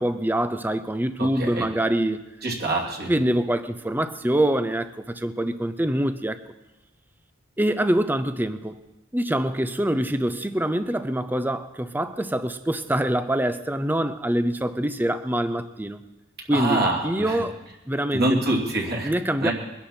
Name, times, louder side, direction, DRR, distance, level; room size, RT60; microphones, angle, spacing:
voice 1, 0.0-2.2 3.1-6.4 7.6-8.8 9.1-16.0 16.5-17.6 17.9-18.5 19.0-19.5, right 1 dB, 10° right, 11 dB, 0.6 m, -25 dB
voice 2, 1.2-1.6 2.4-3.1 16.5-17.4 18.1-19.1 19.4-19.5, right 2 dB, 50° right, -2 dB, 2.8 m, -25 dB
22.5 x 11.5 x 4.4 m, 1.0 s
head